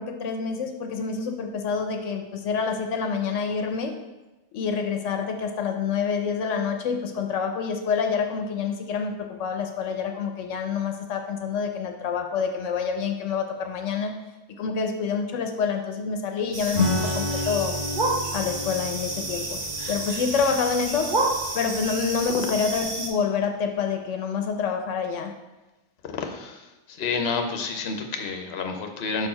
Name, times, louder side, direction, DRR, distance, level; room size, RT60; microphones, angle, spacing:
voice 1, 0.0-3.9 4.5-14.1 14.6-17.8 18.3-19.6 19.9-21.2 21.5-25.3, left 6 dB, 85° left, 5 dB, 1.0 m, -27 dB
sound 1, 16.5-23.1, right 2 dB, 45° right, 1.0 m, -30 dB
Acoustic guitar / Strum, 16.7-22.7, left 2 dB, 85° right, 2.7 m, -32 dB
voice 2, 26.1-26.6 27.0-29.3, left 4 dB, 60° left, 5 dB, 0.9 m, -29 dB
6.5 x 4.5 x 4.3 m, 1.1 s
omnidirectional pair, 1.2 m